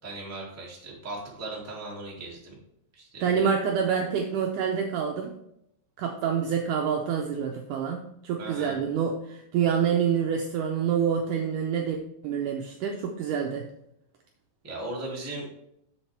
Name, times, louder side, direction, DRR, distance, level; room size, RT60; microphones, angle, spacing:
voice 1, 0.0-2.6 2.9-3.4 8.4-8.7 14.6-15.5, right 2 dB, 5° right, -4 dB, 1.2 m, -38 dB
voice 2, 3.2-5.4 6.0-13.7, right 7 dB, 85° right, 2 dB, 1.8 m, -27 dB
7.5 x 7.2 x 3.4 m, 0.78 s
omnidirectional pair, 4.4 m